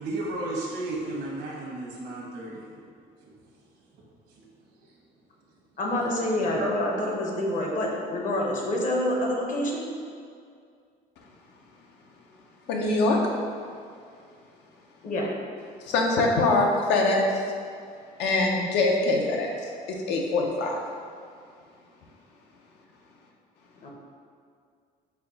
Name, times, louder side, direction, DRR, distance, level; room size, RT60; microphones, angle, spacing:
voice 1, 0.0-2.6 4.4-4.5 6.4-6.7, right 2 dB, 80° right, -2 dB, 1.0 m, -33 dB
voice 2, 5.8-9.8 15.0-15.3 23.8-23.9, left 1 dB, 50° left, -1 dB, 0.8 m, -27 dB
voice 3, 12.7-13.2 15.8-17.4 18.2-20.8, left 2 dB, 80° left, 0 dB, 0.6 m, -24 dB
4.4 x 2.2 x 3.8 m, 2.3 s
cardioid pair, 110°, 17 cm